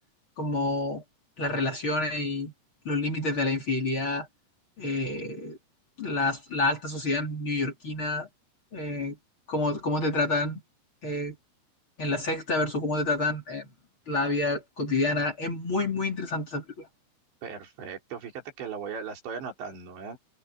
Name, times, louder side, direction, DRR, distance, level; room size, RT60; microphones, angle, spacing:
voice 1, 0.4-1.0 1.4-2.5 2.9-4.3 4.8-5.6 6.0-8.3 8.7-9.2 9.5-10.6 11.0-11.4 12.0-13.7 14.1-16.9, left 2 dB, 30° left, 3.6 m, -28 dB
voice 2, 17.4-20.2, right 6 dB, 80° right, 6.5 m, -38 dB
omnidirectional pair, 5.0 m